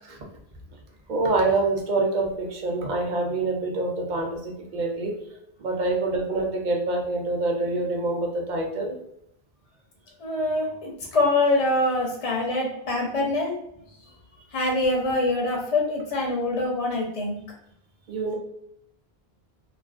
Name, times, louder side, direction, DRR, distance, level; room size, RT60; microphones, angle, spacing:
voice 1, 1.1-5.1 5.6-9.0 18.1-18.3, right 2 dB, 55° right, 1 dB, 0.6 m, -26 dB
voice 2, 10.2-13.5 14.5-17.4, left 2 dB, 45° left, -1 dB, 0.5 m, -24 dB
2.4 x 2.2 x 2.4 m, 0.75 s
omnidirectional pair, 1.0 m